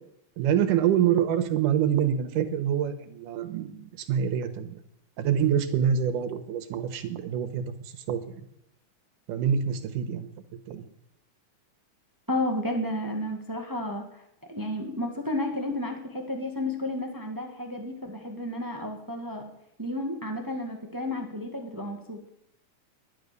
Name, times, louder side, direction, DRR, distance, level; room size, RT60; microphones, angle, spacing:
voice 1, 0.4-4.8 5.2-8.4 9.3-10.3 10.7-10.9, right 8 dB, 85° right, 9 dB, 2.7 m, -26 dB
voice 2, 12.3-14.0 14.5-19.5 19.8-22.2, left 1 dB, 20° right, 4 dB, 0.5 m, -32 dB
11.0 x 11.0 x 6.7 m, 0.79 s
omnidirectional pair, 3.6 m